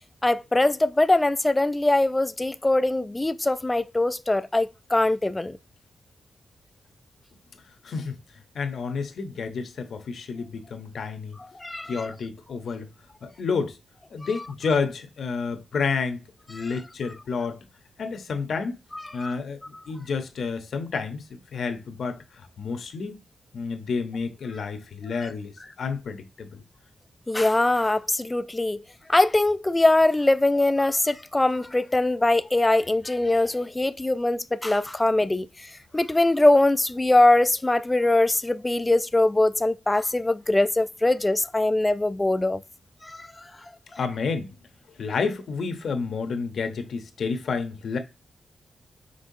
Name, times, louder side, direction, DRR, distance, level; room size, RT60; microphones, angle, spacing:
voice 1, 0.2-5.6 11.5-12.1 16.5-16.6 18.9-19.4 27.3-28.8 29.1-42.6 43.0-43.5, left 2 dB, 15° left, 0.3 m, -22 dB
voice 2, 7.8-8.2 8.5-11.4 11.9-12.9 13.2-13.8 14.1-16.2 16.5-17.6 18.0-18.8 19.1-23.2 23.5-26.6 44.0-44.5 45.0-48.0, left 5 dB, 65° left, 0.7 m, -30 dB
5.4 x 3.3 x 2.7 m
wide cardioid pair, 110°, 0 cm